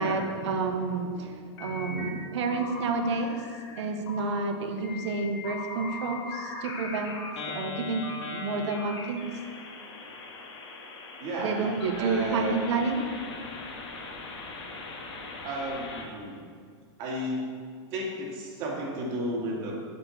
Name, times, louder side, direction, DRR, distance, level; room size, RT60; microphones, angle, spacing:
voice 1, 0.0-7.2 7.5-9.2 11.4-13.1, right 3 dB, 80° right, 5 dB, 1.0 m, -30 dB
sound 1, 1.6-2.1 2.4-3.8 4.1-4.4 4.8-16.1, left 3 dB, 80° left, 2.0 m, -40 dB
voice 2, 11.2-12.6 15.4-16.4 17.0-17.5 17.9-19.8, right 1 dB, 45° right, -3 dB, 2.2 m, -33 dB
8.1 x 4.6 x 6.5 m, 2.1 s
supercardioid pair, 145°, 15 cm